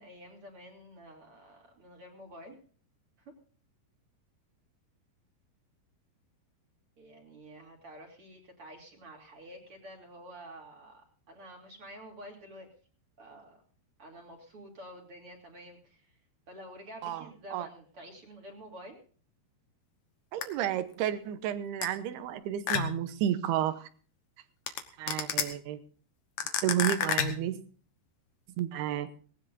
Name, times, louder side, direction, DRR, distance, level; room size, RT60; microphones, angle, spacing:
voice 1, 0.0-2.6 3.3-3.4 7.0-12.7 13.2-13.6 14.0-16.1 16.5-19.0, equal, 35° right, 1 dB, 3.5 m, -49 dB
voice 2, 20.3-23.9 25.0-25.8 26.6-27.6 28.6-29.1, right 11 dB, 80° right, 11 dB, 3.0 m, -31 dB
sound 1, 20.4-20.5 21.8-21.9 22.7-23.1 24.7-24.8 25.1-25.4 26.4-27.5, left 9 dB, 60° left, 2.2 m, -29 dB
19.0 x 18.0 x 2.7 m, 0.42 s
omnidirectional pair, 4.6 m